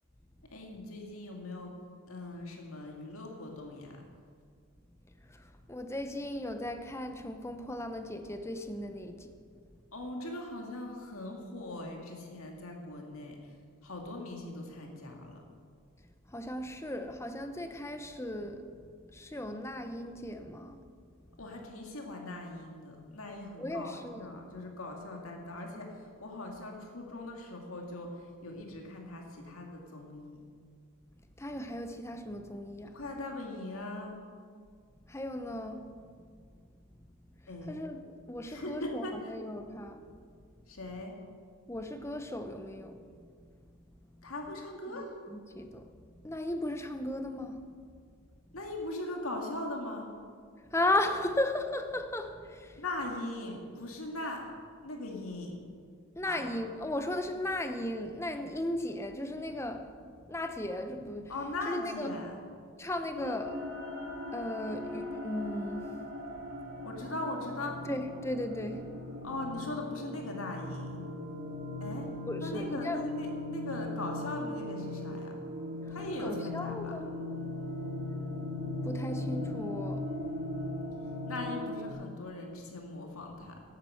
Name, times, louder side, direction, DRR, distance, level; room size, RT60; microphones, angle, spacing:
voice 1, 0.5-1.8 2.1-4.0 9.9-13.5 13.8-15.4 21.4-30.4 32.9-34.2 37.5-37.8 38.4-39.3 40.7-41.1 44.2-45.2 48.5-50.2 52.8-54.5 54.8-55.6 56.2-56.5 61.3-62.4 66.8-67.8 69.2-71.0 71.8-72.1 72.4-75.4 75.9-77.0 81.2-83.6, left 2 dB, 75° left, 2.2 m, -40 dB
voice 2, 5.2-9.3 16.3-18.7 19.1-20.8 23.6-24.3 31.4-33.0 35.1-35.9 37.7-38.0 38.3-40.0 41.7-43.0 43.4-43.5 43.9-44.3 44.9-45.0 45.3-45.9 46.2-47.6 50.7-52.8 56.2-59.9 60.3-61.3 61.7-62.2 62.8-63.6 64.3-65.9 67.9-68.8 72.3-73.0 75.9-77.1 78.8-80.1, left 1 dB, 10° left, 0.7 m, -36 dB
sound 1, 63.1-81.9, left 1 dB, 50° right, 2.1 m, -38 dB
12.0 x 8.9 x 7.8 m
head